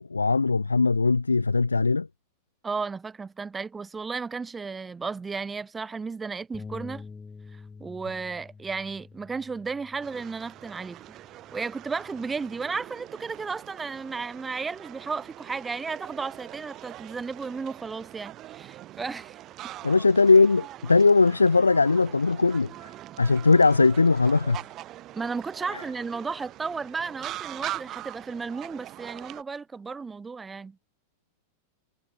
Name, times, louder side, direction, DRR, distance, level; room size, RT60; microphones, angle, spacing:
voice 1, 0.0-2.1 19.8-22.9 23.2-24.6 25.7-25.8, left 3 dB, 80° left, 0.3 m, -20 dB
voice 2, 2.6-7.0 7.8-11.0 11.5-19.4 25.1-30.8, right 4 dB, 15° right, 0.5 m, -34 dB
sound 1, 6.5-12.8, left 4 dB, 15° left, 7.4 m, -47 dB
sound 2, 10.0-29.4, right 14 dB, 35° right, 1.0 m, -43 dB
figure-of-eight pair, 90°, 0 cm